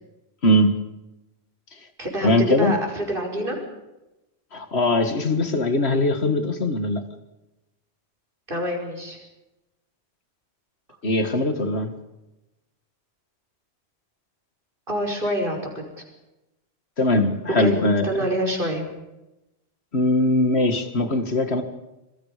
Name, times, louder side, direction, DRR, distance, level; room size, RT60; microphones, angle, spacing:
voice 1, 0.4-0.8 2.2-2.8 4.5-7.0 11.0-11.9 17.0-18.3 19.9-21.6, left 1 dB, 80° left, 8 dB, 2.3 m, -21 dB
voice 2, 2.0-3.6 8.5-9.2 14.9-16.1 17.6-17.7 18.0-18.9, right 1 dB, 55° right, 2 dB, 5.7 m, -26 dB
26.5 x 22.0 x 5.1 m, 0.96 s
omnidirectional pair, 1.1 m